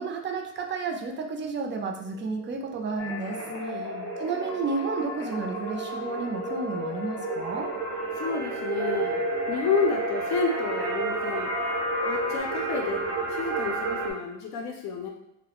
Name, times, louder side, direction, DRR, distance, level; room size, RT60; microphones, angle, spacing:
voice 1, 0.0-3.4 3.7-3.9 4.2-7.7, right 4 dB, 40° right, 4 dB, 0.4 m, -32 dB
sound 1, 2.1-14.1, right 2 dB, 80° right, 0.7 m, -32 dB
sound 2, 3.0-12.4, equal, 10° left, 0.6 m, -37 dB
voice 2, 3.5-4.2 8.2-9.2 9.5-11.5 12.0-13.0 13.3-15.1, left 5 dB, 70° left, 1 dB, 0.5 m, -30 dB
2.3 x 2.0 x 2.9 m, 0.82 s
cardioid pair, 90°, 30 cm